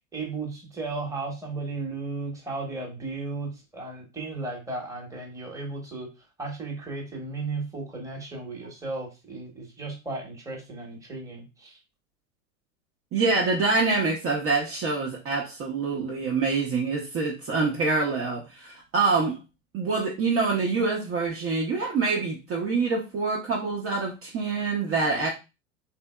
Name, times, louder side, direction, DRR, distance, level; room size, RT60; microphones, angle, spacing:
voice 1, 0.1-6.1 6.4-11.8, right 3 dB, 5° right, 0 dB, 1.0 m, -35 dB
voice 2, 13.1-19.4 19.7-25.3, right 4 dB, 30° right, -2 dB, 0.7 m, -26 dB
3.4 x 2.7 x 2.2 m, 0.27 s
hypercardioid pair, 95°, 44 cm